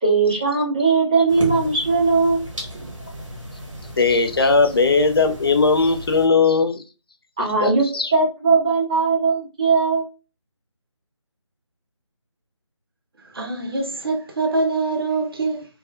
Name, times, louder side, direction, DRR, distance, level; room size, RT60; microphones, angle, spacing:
voice 1, 0.0-2.4 7.4-7.9 8.1-10.1, right 4 dB, 10° right, 0.5 m, -19 dB
sound 1, 1.3-6.3, right 1 dB, 90° right, 1.2 m, -34 dB
voice 2, 4.0-6.8 7.6-8.1, left 4 dB, 50° left, 0.5 m, -18 dB
voice 3, 13.3-15.7, right 3 dB, 50° right, 0.7 m, -24 dB
3.2 x 2.4 x 2.3 m
figure-of-eight pair, 165°, 16 cm